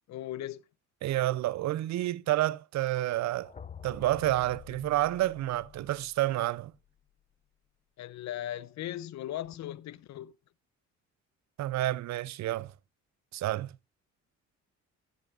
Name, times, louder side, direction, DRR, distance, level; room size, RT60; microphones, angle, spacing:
voice 1, 0.1-0.6 8.0-10.3, left 12 dB, 65° left, 0.5 m, -38 dB
voice 2, 1.0-3.5 3.8-6.7 11.6-12.7 13.3-13.7, right 15 dB, 65° right, 0.5 m, -29 dB
sound 1, 3.2-7.2, left 8 dB, 20° left, 0.5 m, -50 dB
16.0 x 8.1 x 2.4 m
cardioid pair, 90°, 30 cm